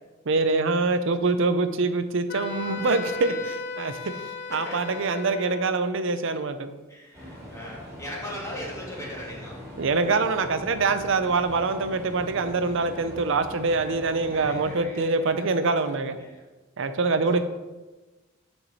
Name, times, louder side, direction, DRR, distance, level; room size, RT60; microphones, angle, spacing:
voice 1, 0.3-4.0 4.5-6.7 9.8-16.2 16.8-17.4, right 3 dB, 65° right, 10 dB, 0.6 m, -24 dB
Wind instrument woodwind instrument, 2.3-5.7, left 4 dB, 55° left, 0.7 m, -36 dB
voice 2, 2.5-3.4 4.0-5.1 6.9-9.6 14.3-15.3 15.6-15.9 16.2-16.4 17.2-17.4, left 1 dB, 15° left, -5 dB, 2.1 m, -40 dB
sound 1, 7.1-14.8, equal, 15° right, 2.4 m, -42 dB
8.8 x 4.7 x 4.1 m, 1.2 s
head